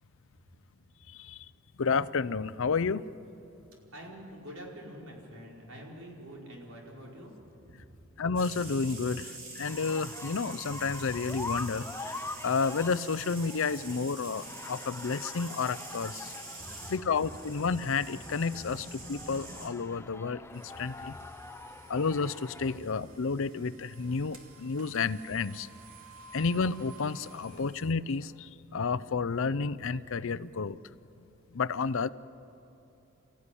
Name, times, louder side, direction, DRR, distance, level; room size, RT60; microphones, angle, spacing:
voice 1, 1.1-1.5 1.8-3.1 8.2-12.2 12.4-16.3 16.9-21.1 21.9-25.7 26.3-30.8 31.5-32.1, left 4 dB, 65° left, 16 dB, 0.6 m, -31 dB
voice 2, 3.9-7.3 7.8-7.9 16.6-16.9, equal, 85° right, -2 dB, 5.1 m, -46 dB
sound 1, 8.4-19.7, right 3 dB, 40° right, 4.0 m, -45 dB
sound 2, 9.6-22.8, left 3 dB, 10° left, 0.7 m, -44 dB
sound 3, 20.5-27.9, right 3 dB, 65° right, 2.7 m, -54 dB
29.5 x 15.0 x 9.9 m, 2.8 s
head